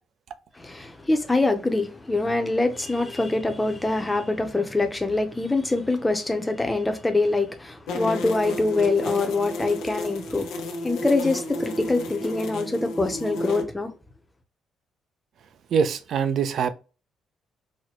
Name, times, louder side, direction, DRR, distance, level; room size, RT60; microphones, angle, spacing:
voice 1, 0.6-10.5 10.8-13.9, left 2 dB, 10° left, 0.7 m, -24 dB
sound 1, 7.9-13.6, left 1 dB, 90° left, 0.7 m, -32 dB
voice 2, 15.7-16.7, right 6 dB, 60° right, 0.5 m, -23 dB
4.2 x 2.2 x 3.0 m
cardioid pair, 110°, 0 cm